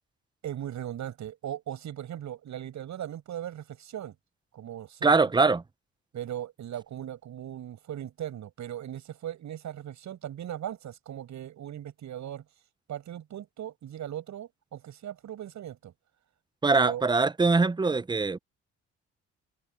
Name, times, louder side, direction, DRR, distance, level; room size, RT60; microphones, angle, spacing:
voice 1, 0.4-4.1 4.5-5.3 6.1-12.4 12.9-15.9 16.7-17.0, right 11 dB, 70° right, 7.4 m, -38 dB
voice 2, 5.0-5.6 16.6-18.4, right 4 dB, 15° right, 0.6 m, -22 dB
cardioid pair, 90°, 30 cm